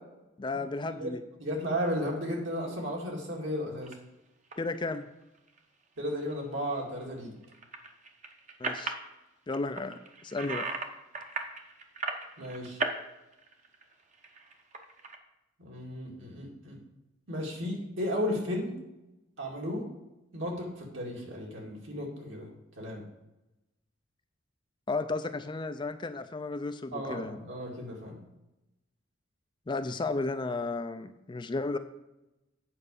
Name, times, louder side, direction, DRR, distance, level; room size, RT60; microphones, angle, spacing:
voice 1, 0.4-1.2 4.6-5.1 8.6-8.9 9.5-10.7 24.9-27.4 29.7-31.8, left 3 dB, 25° left, 9 dB, 0.4 m, -33 dB
voice 2, 1.4-3.9 6.0-7.3 12.4-12.8 15.6-16.8 17.3-18.7 19.4-19.9 20.3-22.5 22.8-23.0 26.9-28.2, equal, 70° right, -2 dB, 2.4 m, -34 dB
sound 1, 3.8-3.9 4.5-4.8 5.2-5.6 7.4-9.1 9.5-10.9 11.1-13.0 13.3-15.2, right 4 dB, 35° right, 0.9 m, -36 dB
8.8 x 5.0 x 6.7 m, 0.94 s
head